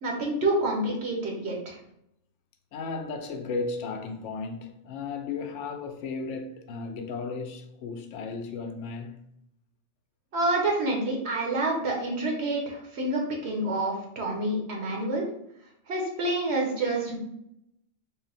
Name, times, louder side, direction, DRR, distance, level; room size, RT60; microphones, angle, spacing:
voice 1, 0.0-1.8 10.3-15.2 15.9-17.2, right 2 dB, 65° right, 1.1 m, -28 dB
voice 2, 2.7-9.2, left 4 dB, 80° left, 0.9 m, -35 dB
3.9 x 2.1 x 4.0 m
omnidirectional pair, 1.2 m